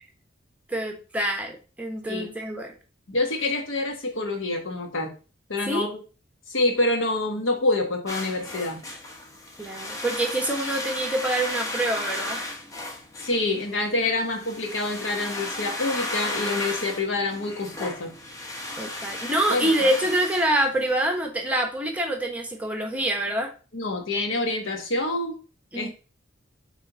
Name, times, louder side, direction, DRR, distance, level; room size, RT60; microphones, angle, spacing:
voice 1, 0.7-2.7 5.7-5.9 9.6-12.4 18.8-23.5 25.7-25.9, right 1 dB, 10° right, 2 dB, 1.1 m, -26 dB
voice 2, 3.1-5.1 5.5-6.0 6.5-8.8 13.2-18.1 19.5-20.0 23.7-25.4 25.7-25.9, left 2 dB, 70° left, 4 dB, 1.3 m, -27 dB
sound 1, 8.1-21.1, left 1 dB, 15° left, 1.0 m, -35 dB
6.8 x 3.5 x 4.0 m, 0.35 s
head